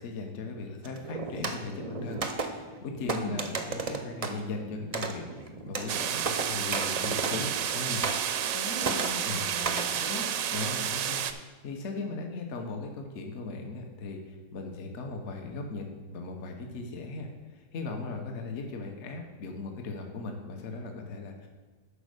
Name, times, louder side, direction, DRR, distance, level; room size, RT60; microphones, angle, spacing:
voice 1, 0.0-5.3 5.6-8.1 9.2-9.6 10.5-11.3 11.6-21.5, left 3 dB, 55° left, 3 dB, 1.1 m, -38 dB
sound 1, 0.8-7.7 8.0-8.6 8.8-9.9, right 4 dB, 40° right, 0.5 m, -35 dB
voice 2, 3.0-3.5 8.5-10.3, left 4 dB, 85° left, -1 dB, 2.1 m, -38 dB
sound 2, 5.9-11.3, right 9 dB, 75° right, 1.0 m, -31 dB
8.3 x 5.3 x 6.5 m, 1.3 s
omnidirectional pair, 1.5 m